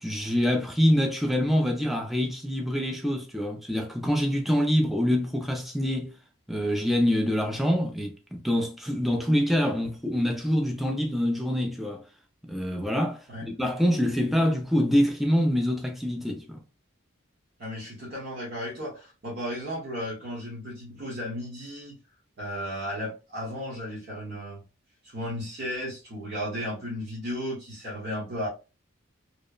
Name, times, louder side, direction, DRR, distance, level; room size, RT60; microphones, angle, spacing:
voice 1, 0.0-6.1 6.5-12.0 12.4-16.6, equal, ahead, 0.3 m, -25 dB
voice 2, 17.6-22.0 22.4-24.6 25.0-28.5, equal, 50° right, 0.9 m, -34 dB
2.9 x 2.0 x 2.2 m
head